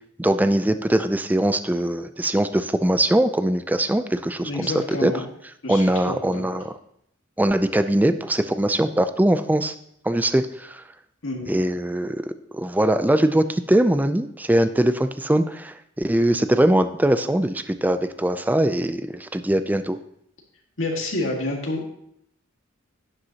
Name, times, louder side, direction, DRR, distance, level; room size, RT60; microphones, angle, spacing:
voice 1, 0.2-5.1 5.7-6.7 7.4-9.7 10.0-10.8 11.5-20.0, right 1 dB, 10° right, 10 dB, 0.4 m, -21 dB
voice 2, 4.4-5.2 5.6-6.4 11.2-11.6 20.8-21.8, left 2 dB, 75° left, 0 dB, 1.8 m, -28 dB
11.5 x 7.9 x 2.9 m, 0.72 s
head